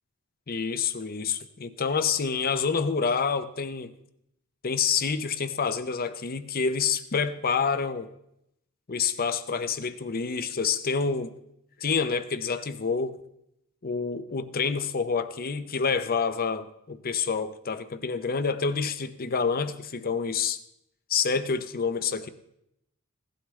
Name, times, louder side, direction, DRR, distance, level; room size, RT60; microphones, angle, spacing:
voice 1, 0.5-3.9 4.6-8.1 8.9-11.3 11.8-13.2 13.8-20.6 21.1-22.3, left 5 dB, 45° left, 12 dB, 0.7 m, -28 dB
16.5 x 11.5 x 3.2 m, 0.77 s
head